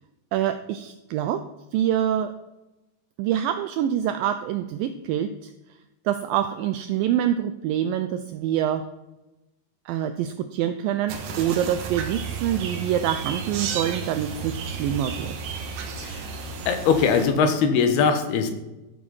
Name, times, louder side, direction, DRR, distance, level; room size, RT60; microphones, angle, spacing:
voice 1, 0.3-1.4 1.7-2.3 3.2-5.5 6.1-8.9 9.9-15.4, right 10 dB, 85° right, 9 dB, 2.0 m, -26 dB
sound 1, 11.1-17.3, right 5 dB, 65° right, 2.9 m, -33 dB
voice 2, 16.7-18.5, left 6 dB, 75° left, 7 dB, 3.2 m, -21 dB
13.5 x 7.2 x 5.6 m, 0.98 s
omnidirectional pair, 4.6 m